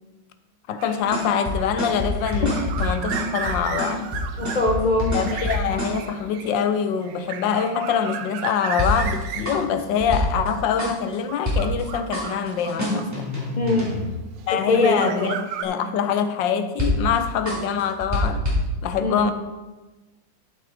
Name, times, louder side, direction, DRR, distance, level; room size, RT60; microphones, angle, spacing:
voice 1, 0.7-4.1 5.1-13.3 14.5-18.4 18.8-19.3, left 7 dB, 80° left, 1.4 m, -24 dB
sound 1, 0.8-13.7 14.4-15.6, right 8 dB, 75° right, 1.3 m, -35 dB
sound 2, 1.0-6.0 8.8-10.5 10.8-11.2 11.5-11.8 12.1-14.1 16.8-17.2 17.5-18.6, left 1 dB, 10° right, 2.6 m, -26 dB
voice 2, 4.4-5.2 13.6-14.0 14.5-15.3 19.0-19.3, left 2 dB, 55° left, 0.5 m, -23 dB
12.5 x 5.9 x 4.1 m
omnidirectional pair, 2.0 m